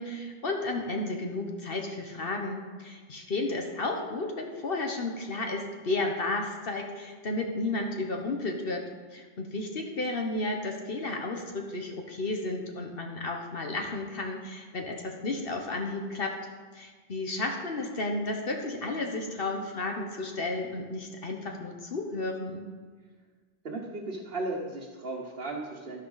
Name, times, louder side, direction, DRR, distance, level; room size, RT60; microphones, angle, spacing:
voice 1, 0.0-8.8 9.1-16.3 16.7-22.6, left 2 dB, 65° left, 2 dB, 1.3 m, -33 dB
voice 2, 23.6-26.0, right 2 dB, 65° right, -3 dB, 1.4 m, -35 dB
12.5 x 11.0 x 4.0 m, 1.5 s
omnidirectional pair, 1.0 m